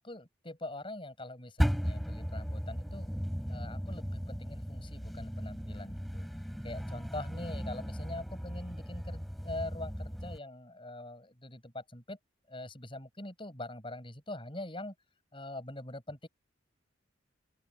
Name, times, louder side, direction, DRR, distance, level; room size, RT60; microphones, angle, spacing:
voice 1, 0.0-3.1 3.5-6.3 6.6-12.2 12.5-14.9 15.3-16.3, left 2 dB, 25° left, 6.9 m, -43 dB
sound 1, 1.6-10.4, equal, ahead, 4.5 m, -36 dB
open air
head